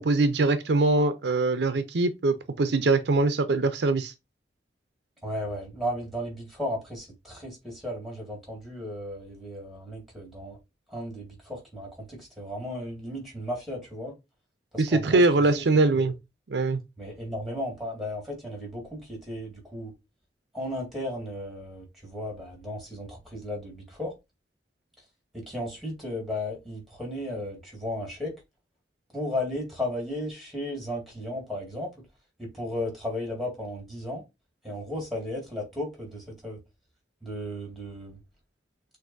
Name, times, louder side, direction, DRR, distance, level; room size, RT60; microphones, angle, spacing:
voice 1, 0.0-4.1 14.8-16.1 16.5-16.8, right 3 dB, 70° right, 0.5 m, -23 dB
voice 2, 5.2-10.6 10.9-14.1 14.7-15.6 15.9-16.1 17.0-19.9 20.5-24.1 25.3-28.4 29.1-31.9 32.4-34.2 34.6-36.6 37.2-38.2, left 1 dB, ahead, 1.9 m, -35 dB
6.1 x 2.6 x 2.6 m
head